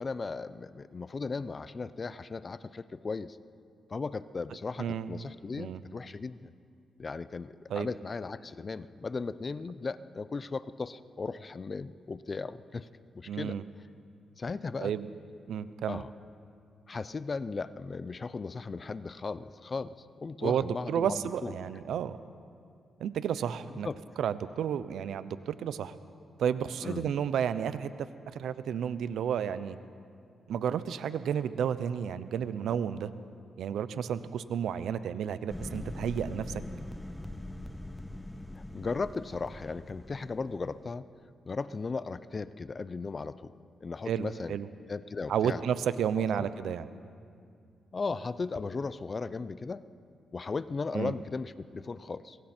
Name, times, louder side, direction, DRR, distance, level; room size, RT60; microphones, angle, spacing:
voice 1, 0.0-3.4 3.9-6.5 7.0-12.9 13.1-13.6 14.4-14.9 15.9-16.1 16.9-21.5 23.8-24.0 26.8-27.1 38.6-41.0 41.5-43.5 43.8-44.6 44.9-45.6 46.3-46.5 47.9-49.8 50.3-52.4, left 4 dB, 40° left, 15 dB, 0.7 m, -36 dB
voice 2, 4.8-5.1 5.6-5.8 7.7-7.9 13.3-13.6 14.8-15.1 15.5-16.0 20.4-22.2 23.0-23.9 24.2-25.9 26.4-28.1 28.3-29.8 30.5-33.1 33.6-36.6 44.1-44.7 45.3-46.9 50.9-51.1, right 8 dB, 80° right, 13 dB, 0.8 m, -31 dB
sound 1, 35.5-40.9, left 1 dB, 5° left, 0.9 m, -42 dB
27.0 x 22.0 x 4.5 m, 2.3 s
cardioid pair, 75°, 0 cm